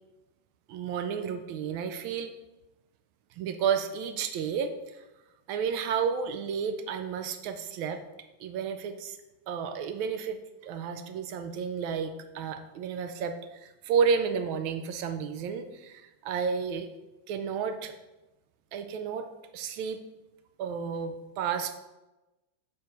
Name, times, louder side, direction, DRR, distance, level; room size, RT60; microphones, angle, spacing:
voice 1, 0.7-2.3 3.4-5.0 5.5-8.0 8.4-9.2 9.5-10.4 10.6-16.9 17.3-17.9 18.7-19.3 19.5-20.0 20.6-21.7, right 6 dB, 90° right, 7 dB, 1.4 m, -31 dB
6.6 x 4.6 x 5.2 m, 1.0 s
omnidirectional pair, 2.1 m